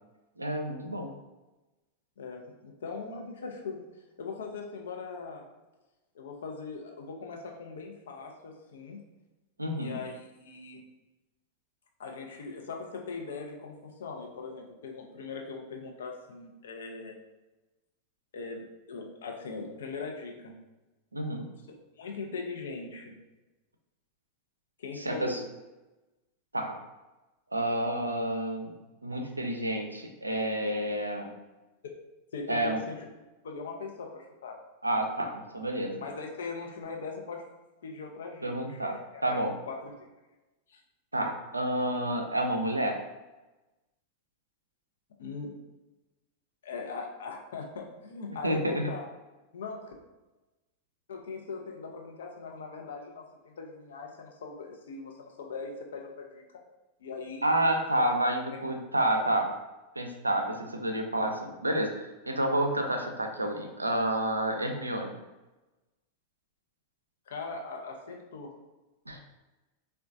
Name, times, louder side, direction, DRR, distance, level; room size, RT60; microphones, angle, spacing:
voice 1, 0.4-1.1 9.6-10.0 21.1-21.5 25.0-25.4 26.5-26.8 27.5-28.7 29.0-31.3 32.5-32.8 34.8-36.0 38.4-39.5 41.1-43.0 48.4-48.9 57.4-59.5 60.0-65.2 69.1-69.2, right 1 dB, 85° right, 4 dB, 0.4 m, -29 dB
voice 2, 2.2-3.8 4.2-5.4 6.1-9.0 9.7-10.8 12.0-17.2 18.3-20.6 22.0-23.2 24.8-25.4 32.3-33.0 33.4-34.6 36.0-37.4 37.8-39.4 39.7-40.1 40.7-40.8 45.2-45.5 46.6-49.1 49.5-49.9 51.1-56.4 57.0-57.5 57.9-58.2 58.5-58.6 59.0-59.3 67.3-68.5, left 4 dB, 65° left, 1 dB, 0.5 m, -40 dB
3.8 x 2.2 x 2.5 m, 1.1 s
figure-of-eight pair, 90°, 0 cm